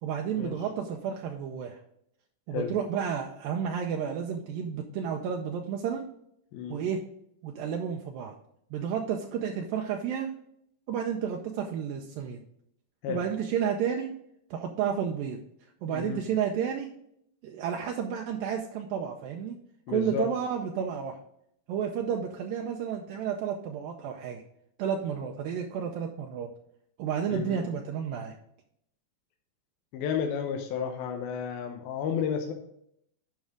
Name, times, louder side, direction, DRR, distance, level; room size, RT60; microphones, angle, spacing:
voice 1, 0.0-1.8 2.5-6.0 6.7-7.0 7.4-8.4 8.7-10.3 10.9-12.4 13.1-14.1 14.5-15.4 15.8-16.9 17.4-19.6 19.9-21.2 21.7-24.4 24.8-26.5 27.0-28.3, right 8 dB, 80° right, 2 dB, 2.3 m, -31 dB
voice 2, 15.9-16.2 19.9-20.3 27.3-27.6 29.9-32.5, left 7 dB, 80° left, 4 dB, 2.7 m, -32 dB
10.5 x 5.4 x 3.7 m, 0.72 s
omnidirectional pair, 4.3 m